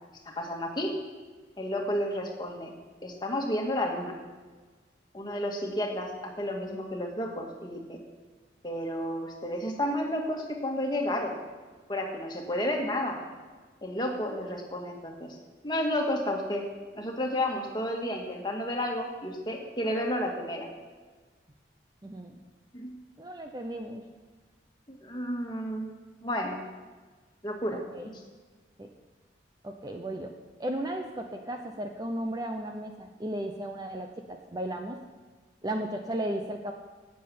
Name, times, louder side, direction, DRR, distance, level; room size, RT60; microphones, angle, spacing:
voice 1, 0.3-1.0 1.6-2.7 3.0-4.1 5.1-8.0 8.6-11.4 11.9-13.2 13.8-15.4 15.6-16.7 16.9-20.7 22.7-22.9 24.9-25.9 26.2-26.6 27.4-27.8 28.1-28.2, left 1 dB, 25° left, 1 dB, 1.9 m, -31 dB
voice 2, 22.0-22.4 23.2-24.0 27.7-28.1 28.8-28.9 29.6-30.3 30.6-35.0 35.6-36.7, right 1 dB, 20° right, 4 dB, 0.7 m, -35 dB
11.5 x 7.9 x 8.7 m, 1.4 s
head